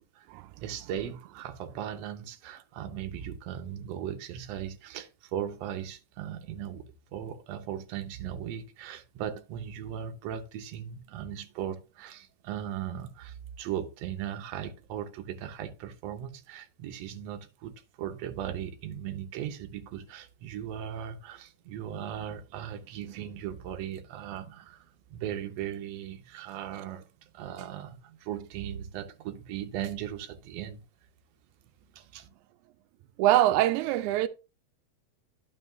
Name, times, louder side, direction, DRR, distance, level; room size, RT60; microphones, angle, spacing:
voice 1, 0.6-6.9 7.1-30.8 32.0-32.3, right 10 dB, 70° right, 1.9 m, -38 dB
voice 2, 33.2-34.3, right 14 dB, 90° right, 2.0 m, -23 dB
11.5 x 5.4 x 2.6 m
omnidirectional pair, 3.4 m